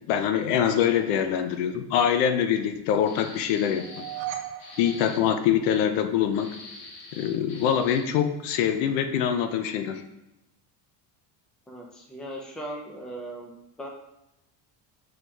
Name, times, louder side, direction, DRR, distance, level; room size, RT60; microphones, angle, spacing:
voice 1, 0.1-4.1 4.8-6.5 7.2-10.0, left 9 dB, 85° left, 8 dB, 0.6 m, -24 dB
voice 2, 0.9-1.2 11.7-13.9, right 1 dB, ahead, 0 dB, 0.4 m, -39 dB
sound 1, 3.0-4.3 4.6-5.2 6.3-8.2, left 3 dB, 45° left, 1.2 m, -45 dB
sound 2, 3.7-6.0, right 11 dB, 75° right, 0.8 m, -38 dB
4.7 x 4.3 x 2.3 m, 0.89 s
cardioid pair, 120°, 49 cm